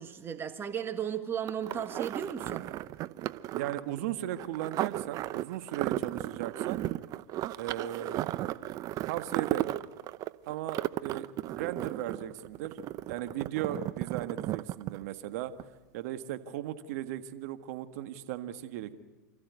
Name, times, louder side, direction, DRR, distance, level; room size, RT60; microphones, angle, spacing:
voice 1, 0.0-2.6, right 8 dB, 25° right, 7 dB, 1.6 m, -35 dB
sound 1, 1.5-15.3 15.6-15.7, right 14 dB, 40° right, 0.8 m, -35 dB
voice 2, 3.5-6.8 7.6-8.4 9.1-9.7 10.4-11.2 11.5-12.8 13.1-15.5 15.9-18.9, right 12 dB, 60° right, 9 dB, 1.7 m, -37 dB
29.0 x 14.5 x 9.6 m, 1.2 s
hypercardioid pair, 105°, 9 cm